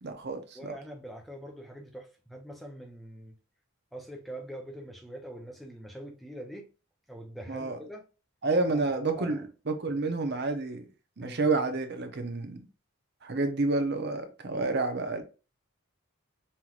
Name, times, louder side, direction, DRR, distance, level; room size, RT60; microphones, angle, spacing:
voice 1, 0.0-0.7 7.5-7.8 8.4-10.8 11.2-12.7 13.2-15.2, right 3 dB, 50° right, 0.7 m, -29 dB
voice 2, 0.5-3.3 3.9-6.7 7.1-8.0 8.7-9.4 9.9-10.0 11.2-11.4, right 1 dB, ahead, 0.6 m, -44 dB
5.6 x 3.0 x 2.4 m
head